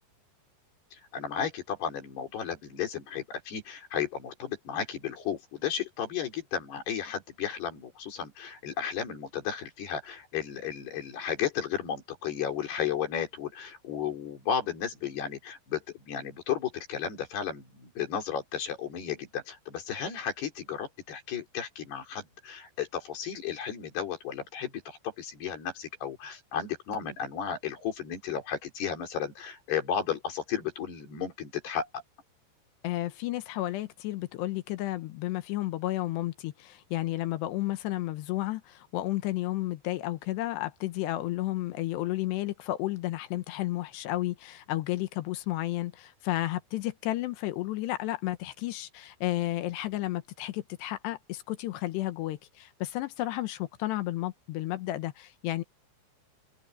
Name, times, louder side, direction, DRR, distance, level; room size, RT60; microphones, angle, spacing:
voice 1, 0.9-31.9, left 8 dB, 60° left, 6.0 m, -34 dB
voice 2, 32.8-55.6, left 16 dB, 80° left, 2.9 m, -32 dB
omnidirectional pair, 5.3 m